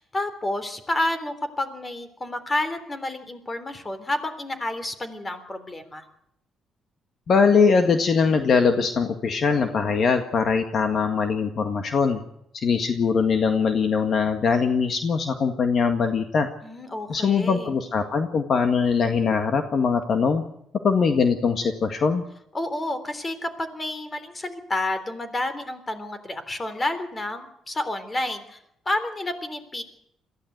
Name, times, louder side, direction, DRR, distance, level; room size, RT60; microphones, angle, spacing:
voice 1, 0.0-6.0 16.6-17.8 22.5-29.8, left 1 dB, 25° left, 10 dB, 3.5 m, -30 dB
voice 2, 7.3-12.2 12.5-16.5 17.1-20.4 20.8-22.3, left 5 dB, 55° left, 6 dB, 1.8 m, -22 dB
22.5 x 15.0 x 8.1 m, 0.76 s
cardioid pair, 90°, 0 cm